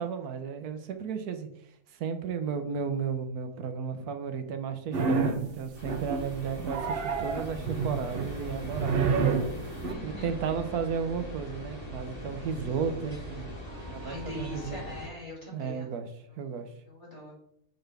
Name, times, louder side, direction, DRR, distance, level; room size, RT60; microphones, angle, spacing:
voice 1, 0.0-1.5 1.9-9.1 10.0-13.5 13.9-14.8 15.5-16.1 16.4-16.7, right 6 dB, 90° right, 8 dB, 1.3 m, -34 dB
sound 1, 4.9-5.5 5.9-6.3 6.7-9.9, right 5 dB, 50° right, 0.9 m, -29 dB
sound 2, 5.7-15.1, equal, 50° left, 2.9 m, -41 dB
voice 2, 9.8-10.3 13.8-15.8 16.9-17.3, left 2 dB, 30° left, -6 dB, 3.3 m, -42 dB
6.7 x 6.0 x 3.4 m, 0.72 s
omnidirectional pair, 1.6 m